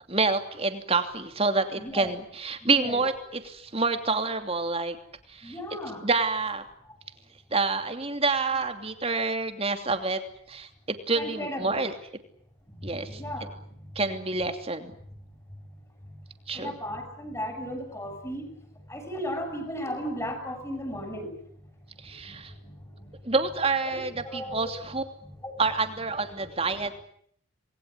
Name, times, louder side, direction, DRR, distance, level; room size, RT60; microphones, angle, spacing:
voice 1, 0.1-5.0 5.3-5.5 6.0-6.6 7.5-10.2 10.5-12.0 12.8-13.2 13.9-14.9 16.5-16.8 22.0-22.5 23.2-25.0 25.6-27.0, right 3 dB, 30° right, 7 dB, 2.9 m, -28 dB
voice 2, 1.7-2.1 2.6-3.0 5.4-6.0 11.2-11.8 13.1-13.5 16.5-18.5 18.9-21.3 23.8-24.6 25.4-25.5, equal, 15° left, 6 dB, 7.4 m, -35 dB
28.5 x 21.5 x 9.9 m, 0.67 s
head